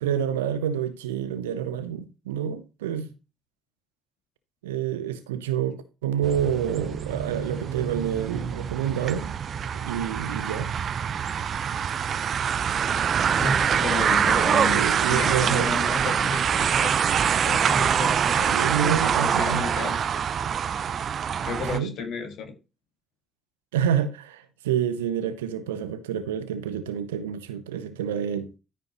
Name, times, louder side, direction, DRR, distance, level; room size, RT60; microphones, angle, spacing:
voice 1, 0.0-3.1 4.6-9.4 9.6-10.7 14.6-15.7 18.5-19.6 21.7-21.9 23.7-28.5, right 9 dB, 80° right, 0.8 m, -28 dB
sound 1, 6.2-21.8, right 8 dB, 50° right, 0.5 m, -25 dB
voice 2, 13.4-14.8 15.1-17.0 17.4-18.6 18.9-20.0 21.4-22.6, left 3 dB, 60° left, 1.7 m, -32 dB
13.5 x 5.3 x 3.0 m
figure-of-eight pair, 45°, 0 cm